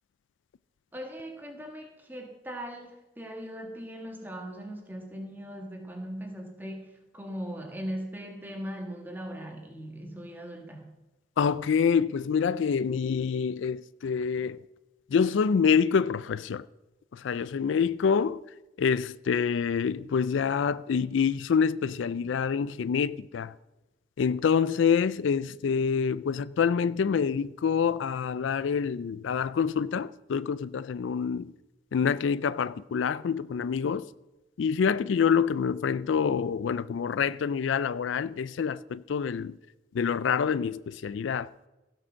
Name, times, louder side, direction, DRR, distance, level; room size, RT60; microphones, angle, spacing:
voice 1, 0.9-10.9, equal, 10° right, 1.7 m, -39 dB
voice 2, 11.4-14.6 15.1-16.6 17.1-18.4 18.8-23.5 24.2-31.5 31.9-34.1 34.6-39.5 39.9-41.5, left 6 dB, 80° left, 0.4 m, -26 dB
16.0 x 6.3 x 6.3 m
head